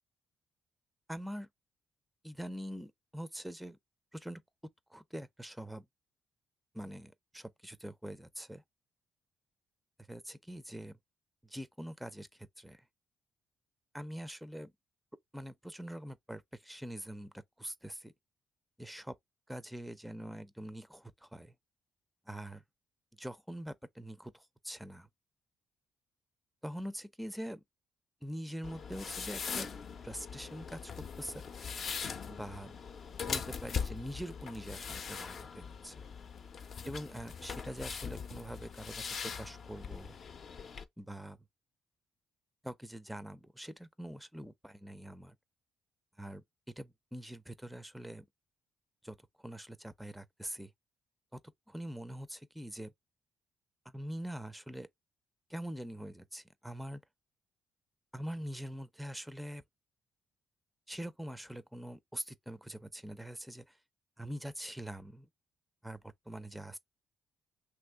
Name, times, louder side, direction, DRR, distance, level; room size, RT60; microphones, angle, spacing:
voice 1, 1.1-1.5 2.2-3.8 4.1-4.4 4.9-5.8 6.7-8.6 10.1-10.9 11.4-12.3 12.6-12.8 13.9-14.7 15.3-18.1 18.8-19.1 19.5-21.5 22.3-22.6 23.2-25.1 26.6-27.6 28.2-29.7 30.0-30.9 31.2-31.4 32.3-32.7 33.3-36.1 36.8-40.2 41.0-41.4 42.6-45.4 46.2-46.4 46.8-48.2 49.0-49.2 49.4-50.7 51.3-51.4 51.7-52.9 53.9-54.9 55.5-57.0 58.1-59.6 60.9-63.7 64.2-65.3 65.8-66.0 66.3-66.8, equal, 5° right, 0.4 m, -44 dB
sound 1, 28.6-40.8, left 6 dB, 55° left, 0.6 m, -41 dB
3.0 x 2.5 x 3.4 m
cardioid pair, 90°, 0 cm